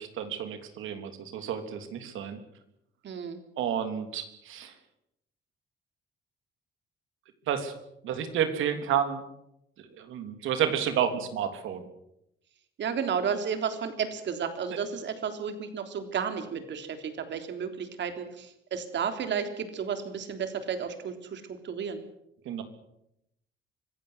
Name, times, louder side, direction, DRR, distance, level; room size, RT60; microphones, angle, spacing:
voice 1, 0.0-2.4 3.6-4.7 7.5-7.7 8.0-9.2 10.0-11.8 22.4-22.6, right 9 dB, 85° right, 8 dB, 3.2 m, -30 dB
voice 2, 3.0-3.4 12.8-22.0, right 7 dB, 65° right, 7 dB, 3.6 m, -32 dB
25.5 x 16.0 x 8.0 m, 0.80 s
cardioid pair, 90°, 20 cm